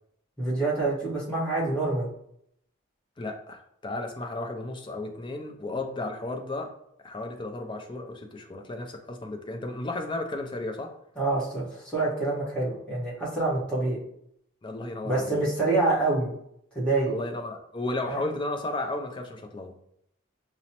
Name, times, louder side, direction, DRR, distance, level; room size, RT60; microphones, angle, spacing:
voice 1, 0.4-2.1 11.2-14.0 15.0-16.3 16.7-17.1 18.1-18.3, right 2 dB, 5° left, -8 dB, 1.2 m, -26 dB
voice 2, 3.2-6.7 7.0-10.9 14.6-15.5 17.1-19.7, left 2 dB, 25° left, 4 dB, 0.4 m, -34 dB
5.0 x 2.0 x 2.9 m, 0.73 s
head